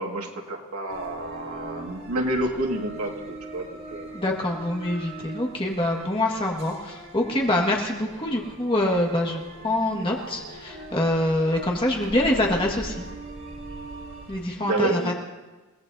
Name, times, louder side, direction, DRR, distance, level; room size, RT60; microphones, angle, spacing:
voice 1, 0.0-4.1 14.6-15.1, right 2 dB, 85° right, 1 dB, 2.0 m, -29 dB
sound 1, 0.9-14.5, right 2 dB, 55° right, 4.0 m, -41 dB
voice 2, 4.1-13.1 14.3-15.1, left 1 dB, 25° left, -1 dB, 1.8 m, -25 dB
30.0 x 17.0 x 2.8 m, 1.2 s
head